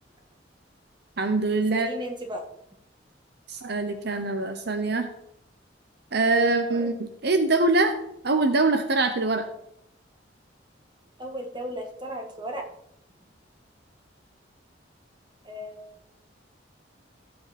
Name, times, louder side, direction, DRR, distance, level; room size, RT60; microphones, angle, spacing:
voice 1, 1.2-1.9 3.5-5.1 6.1-7.9 8.2-9.5, right 3 dB, 60° right, 7 dB, 0.9 m, -23 dB
voice 2, 1.7-2.4 6.8-6.9 11.2-12.7 15.5-16.0, equal, 25° right, 2 dB, 1.9 m, -35 dB
15.5 x 7.7 x 4.3 m, 0.78 s
head